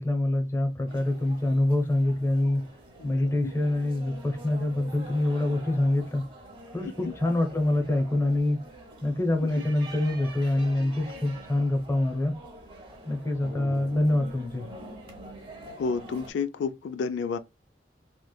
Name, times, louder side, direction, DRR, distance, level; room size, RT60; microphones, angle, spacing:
voice 1, 0.0-2.6 3.0-6.2 6.7-8.6 9.0-12.3 13.0-14.7, left 1 dB, 15° left, 0.7 m, -25 dB
sound 1, 0.9-16.3, right 1 dB, 30° right, 1.0 m, -45 dB
voice 2, 3.0-3.5 7.0-7.1 15.8-17.4, left 5 dB, 85° left, 0.3 m, -31 dB
3.1 x 3.1 x 2.2 m
head